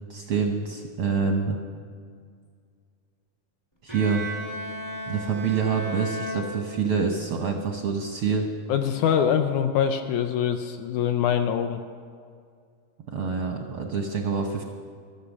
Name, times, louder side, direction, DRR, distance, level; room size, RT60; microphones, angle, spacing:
voice 1, 0.1-1.6 3.8-4.3 5.1-8.5 13.1-14.6, right 5 dB, 75° right, 3 dB, 1.2 m, -26 dB
Bowed string instrument, 3.9-7.2, right 1 dB, 25° left, 0.4 m, -35 dB
voice 2, 8.7-11.8, left 8 dB, 80° left, 7 dB, 1.8 m, -24 dB
13.0 x 13.0 x 7.2 m, 2.1 s
omnidirectional pair, 3.7 m